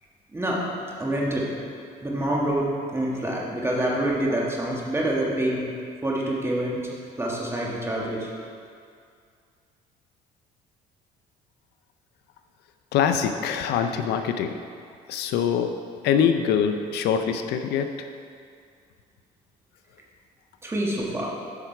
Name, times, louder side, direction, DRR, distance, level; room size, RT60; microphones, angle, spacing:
voice 1, 0.3-0.6 1.0-1.5 2.0-5.6 6.0-6.8 7.2-8.3 20.6-21.3, right 1 dB, 15° right, -3 dB, 1.6 m, -26 dB
voice 2, 12.9-14.6 15.1-15.7 16.0-17.9, left 8 dB, 75° left, 7 dB, 0.5 m, -23 dB
8.4 x 5.8 x 4.6 m, 2.3 s
cardioid pair, 110°, 17 cm